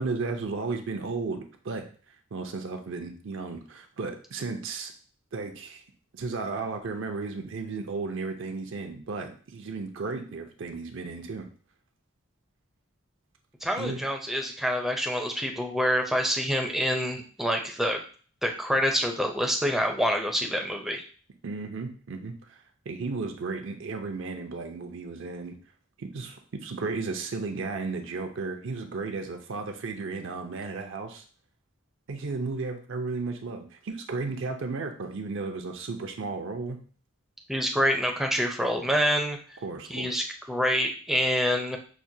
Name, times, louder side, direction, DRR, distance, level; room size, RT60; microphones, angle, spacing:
voice 1, 0.0-1.8 2.3-4.9 5.3-5.8 6.1-11.5 13.8-14.0 21.4-25.6 26.0-31.2 32.1-36.8 39.6-40.2, right 4 dB, 65° right, 5 dB, 0.5 m, -34 dB
voice 2, 13.6-18.0 18.4-21.0 37.5-39.4 39.9-41.8, equal, ahead, 2 dB, 0.5 m, -26 dB
5.9 x 2.2 x 2.7 m, 0.41 s
head